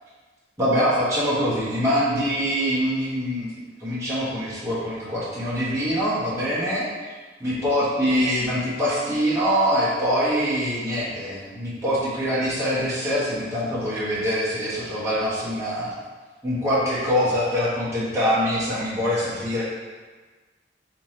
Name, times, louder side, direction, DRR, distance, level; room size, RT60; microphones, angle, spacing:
voice 1, 0.6-3.5 3.8-7.1 7.4-16.0 16.4-19.6, equal, 15° right, -10 dB, 1.1 m, -24 dB
3.4 x 2.9 x 4.2 m, 1.4 s
head